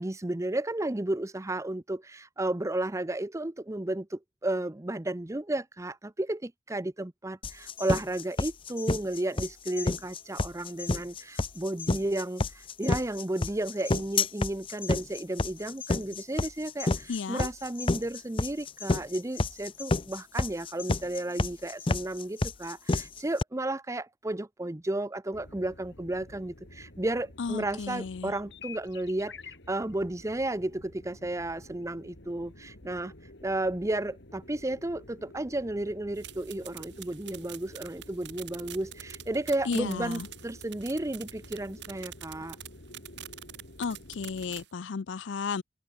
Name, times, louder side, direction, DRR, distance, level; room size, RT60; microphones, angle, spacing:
voice 1, 0.0-33.1 33.4-42.6, right 1 dB, 15° right, 0.7 m, -33 dB
sound 1, 7.4-23.4, left 3 dB, 30° left, 0.6 m, -29 dB
voice 2, 17.1-17.5 27.4-28.3 39.6-40.3 43.8-45.6, left 5 dB, 85° left, 0.5 m, -33 dB
sound 2, 25.3-44.7, left 2 dB, 70° left, 4.0 m, -50 dB
sound 3, 36.1-44.7, right 13 dB, 65° right, 1.6 m, -46 dB
open air
head